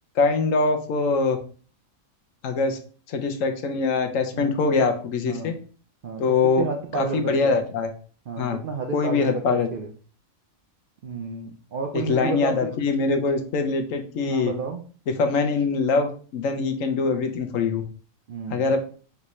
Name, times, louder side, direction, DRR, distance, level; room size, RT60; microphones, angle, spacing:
voice 1, 0.2-1.4 2.4-2.8 3.1-5.5 6.2-6.6 6.9-7.9 8.4-8.6 8.9-9.7 11.9-14.5 15.2-17.8 18.5-18.8, left 4 dB, 75° left, 6 dB, 1.0 m, -23 dB
voice 2, 6.0-7.5 8.3-9.9 11.0-12.7 14.2-14.8 18.3-18.7, right 5 dB, 65° right, 3 dB, 0.5 m, -32 dB
4.1 x 3.4 x 3.0 m, 0.41 s
omnidirectional pair, 1.4 m